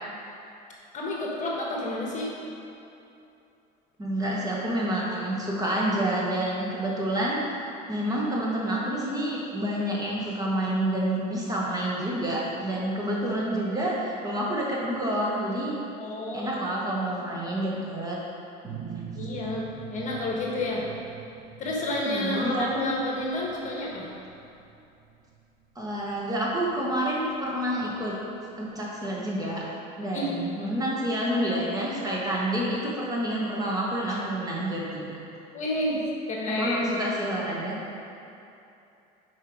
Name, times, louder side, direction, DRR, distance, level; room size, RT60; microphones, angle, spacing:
voice 1, 0.9-2.3 16.0-16.5 17.2-17.4 19.1-20.8 21.6-24.1 30.1-30.3 35.5-36.0 36.3-36.8, left 1 dB, 40° left, -2 dB, 1.2 m, -30 dB
voice 2, 4.0-7.4 7.9-15.7 16.3-18.2 18.6-19.1 22.0-22.9 25.7-28.2 28.6-29.6 30.0-35.2 36.5-37.8, right 1 dB, 20° right, -4 dB, 1.2 m, -28 dB
sound 1, 18.6-28.0, right 8 dB, 60° right, 0.7 m, -44 dB
5.7 x 4.6 x 4.8 m, 2.8 s
supercardioid pair, 110°, 20 cm